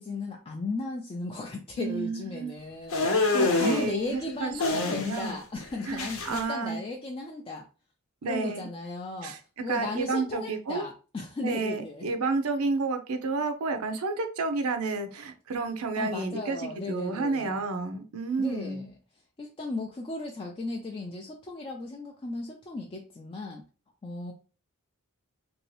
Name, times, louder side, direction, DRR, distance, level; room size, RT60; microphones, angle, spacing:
voice 1, 0.0-7.7 8.2-12.1 16.0-17.6 18.4-19.0 19.4-23.6 24.0-24.3, left 3 dB, 25° left, 0 dB, 0.4 m, -36 dB
voice 2, 1.8-2.6 3.3-4.5 4.9-5.3 5.9-6.8 8.2-8.7 9.2-9.4 9.7-10.9 11.4-18.9, right 4 dB, 75° right, 7 dB, 0.6 m, -31 dB
dry nose blow, 2.9-3.9 4.6-5.4 5.6-6.4, left 3 dB, 65° left, 0.8 m, -26 dB
2.9 x 2.7 x 3.1 m, 0.34 s
head